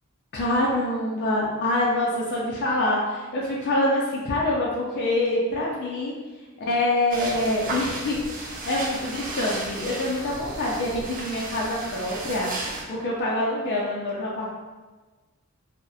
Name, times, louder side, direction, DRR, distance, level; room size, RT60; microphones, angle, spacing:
voice 1, 0.3-6.1 6.7-14.5, left 1 dB, 55° left, -4 dB, 0.4 m, -25 dB
sound 1, 7.1-12.8, right 2 dB, 40° right, 0.4 m, -34 dB
2.7 x 2.0 x 2.2 m, 1.3 s
head